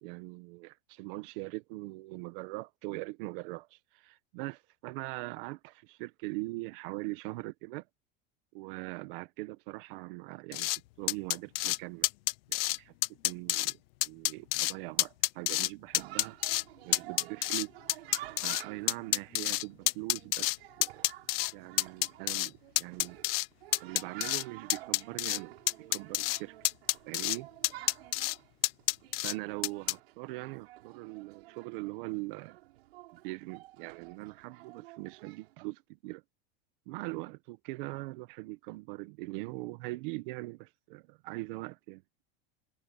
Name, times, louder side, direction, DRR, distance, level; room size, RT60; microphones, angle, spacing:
voice 1, 0.0-7.9 8.5-10.7 11.0-12.1 12.5-16.3 16.8-17.7 18.4-21.0 21.5-23.2 23.8-26.6 27.1-27.5 29.2-32.6 33.2-36.2 36.9-42.0, right 22 dB, 60° right, 1.2 m, -41 dB
sound 1, 10.5-10.8 11.1-11.8 12.0-12.8 13.0-13.7 14.0-14.7 15.0-15.7 15.9-16.6 16.9-18.6 18.9-20.6 20.8-21.5 21.8-22.5 22.8-23.5 23.7-24.4 24.7-25.4 25.7-26.4 26.6-27.4 27.6-28.3 28.6-29.3 29.6-29.9, left 20 dB, 75° left, 0.8 m, -28 dB
Chatter, 15.9-35.5, right 17 dB, 85° right, 7.9 m, -51 dB
supercardioid pair, 155°, 30 cm